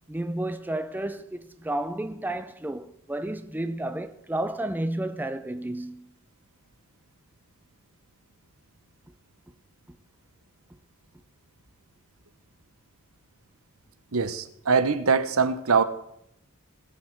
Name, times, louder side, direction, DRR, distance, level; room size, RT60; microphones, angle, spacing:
voice 1, 0.1-6.1, right 1 dB, 10° right, 0.5 m, -31 dB
voice 2, 14.1-15.8, right 5 dB, 75° right, 0.8 m, -23 dB
19.0 x 8.5 x 4.6 m
head